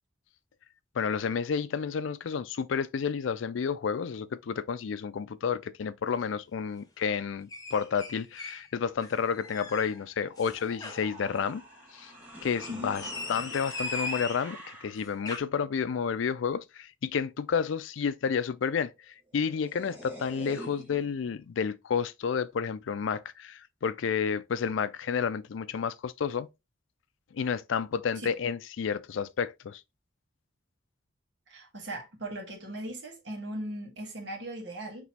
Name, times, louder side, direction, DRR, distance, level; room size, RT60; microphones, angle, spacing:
voice 1, 0.9-11.6 11.9-12.1 12.4-13.0 13.3-26.5 27.3-29.8, left 6 dB, 85° left, 0.4 m, -31 dB
sound 1, 7.5-8.7 9.0-10.0 10.4-11.1 12.5-14.5 15.0-15.4, left 3 dB, 20° left, 0.7 m, -38 dB
sound 2, 9.4-15.1 19.0-19.1 19.3-21.3, right 1 dB, 10° right, 1.3 m, -46 dB
voice 2, 31.5-35.1, right 1 dB, 70° right, 1.5 m, -38 dB
6.0 x 3.0 x 2.8 m
head